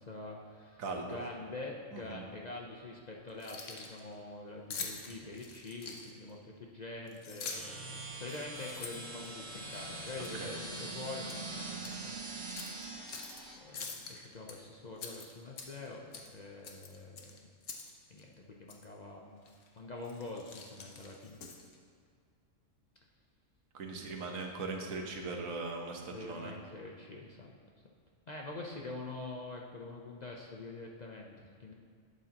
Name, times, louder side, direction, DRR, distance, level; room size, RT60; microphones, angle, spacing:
voice 1, 0.0-13.2 13.5-17.5 18.1-21.4 24.2-24.5 26.1-27.5 28.3-31.7, left 2 dB, 40° left, -1 dB, 0.6 m, -45 dB
voice 2, 0.8-1.2 1.9-2.2 10.4-10.6 23.7-26.5, right 3 dB, 85° right, 2 dB, 1.4 m, -39 dB
Keys jangling, 3.3-4.0 4.7-6.3 7.1-7.8 8.2-9.8 10.2-10.4 10.8-11.4 11.8-11.9 12.5-13.4 13.7-14.6 15.0-15.9 16.1-16.3 16.6-17.9 18.2-18.3 18.7-18.9 19.5-19.7 20.0-21.8, left 5 dB, 65° left, 1.2 m, -45 dB
sound 1, 7.5-13.6, right 3 dB, 55° right, 1.4 m, -43 dB
11.5 x 8.0 x 2.9 m, 2.1 s
omnidirectional pair, 1.4 m